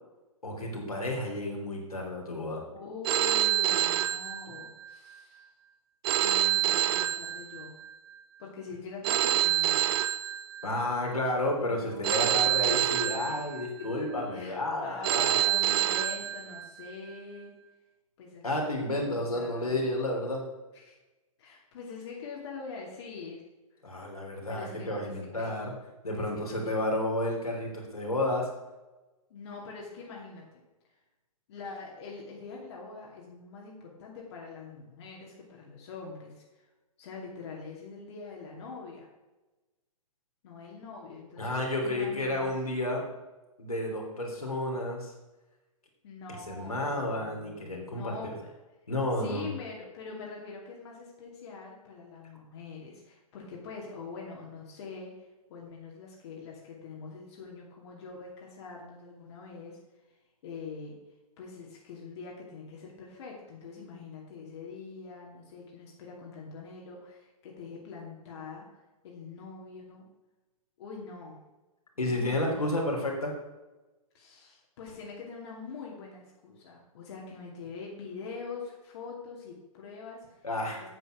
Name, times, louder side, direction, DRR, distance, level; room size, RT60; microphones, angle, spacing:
voice 1, 0.4-2.6 10.6-15.6 18.4-20.4 23.8-25.7 26.0-28.5 41.4-43.1 43.6-45.1 46.3-48.2 48.9-49.5 72.0-73.3 80.4-80.8, left 1 dB, 80° left, -1 dB, 3.5 m, -31 dB
voice 2, 2.7-5.4 6.2-7.8 8.4-10.0 11.6-12.8 13.3-13.4 13.8-13.9 14.1-17.5 18.2-19.8 20.7-21.0 21.4-23.4 24.5-25.6 26.1-26.7 29.3-30.6 31.5-36.6 37.0-39.1 40.4-42.5 46.0-48.5 49.2-59.8 60.4-61.0 61.4-70.1 70.8-71.4 72.0-72.8 74.1-80.4, left 4 dB, 50° left, -2 dB, 2.5 m, -44 dB
Telephone, 3.0-4.9 6.0-7.9 9.0-10.9 12.0-13.9 15.0-16.9, right 13 dB, 40° right, 0.6 m, -27 dB
9.4 x 8.1 x 6.2 m, 1.1 s
figure-of-eight pair, 115°, 19 cm